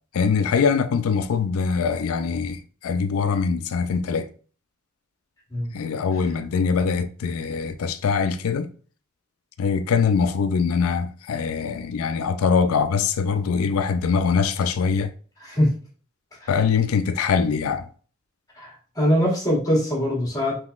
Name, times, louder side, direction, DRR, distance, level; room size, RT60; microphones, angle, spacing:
voice 1, 0.1-4.3 5.7-8.7 9.6-15.1 16.5-17.9, left 5 dB, 80° left, 0.4 m, -23 dB
voice 2, 15.4-15.7 16.4-16.5 18.6-20.6, equal, 15° left, 1.3 m, -22 dB
3.7 x 2.8 x 2.3 m
head